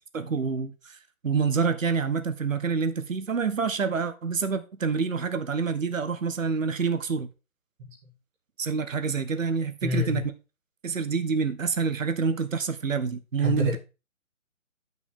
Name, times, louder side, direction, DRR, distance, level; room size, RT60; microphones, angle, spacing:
voice 1, 0.1-1.0 1.2-7.3 8.6-10.2 10.8-13.8, right 5 dB, 65° right, 1.3 m, -27 dB
voice 2, 9.8-10.2 13.4-13.8, left 4 dB, 10° right, 1.2 m, -28 dB
9.2 x 6.0 x 3.7 m
figure-of-eight pair, 160°, 42 cm